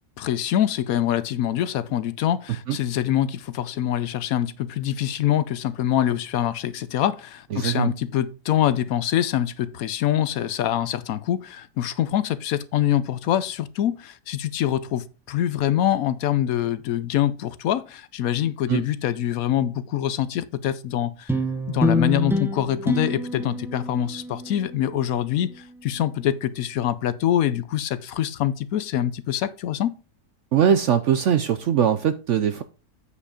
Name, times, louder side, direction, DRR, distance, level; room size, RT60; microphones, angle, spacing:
voice 1, 0.2-21.4 21.7-29.9, left 11 dB, 70° left, 1.0 m, -25 dB
voice 2, 7.5-7.9 18.7-18.9 30.5-32.6, right 8 dB, 65° right, 0.7 m, -21 dB
sound 1, 21.3-25.9, left 1 dB, 5° right, 0.4 m, -27 dB
8.4 x 5.2 x 4.9 m
omnidirectional pair, 1.7 m